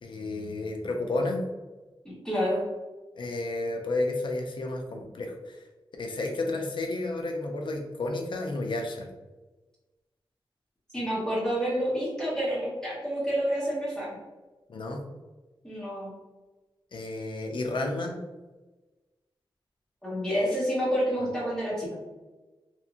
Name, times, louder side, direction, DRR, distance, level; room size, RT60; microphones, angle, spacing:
voice 1, 0.0-1.4 3.2-5.6 6.0-9.1 14.7-15.0 16.9-18.1 21.2-21.3, left 2 dB, 60° left, 2 dB, 0.5 m, -31 dB
voice 2, 2.0-2.6 10.9-14.2 15.6-16.1 20.0-21.9, equal, 5° left, -8 dB, 1.0 m, -28 dB
2.8 x 2.5 x 2.4 m, 1.2 s
wide cardioid pair, 115°, 9 cm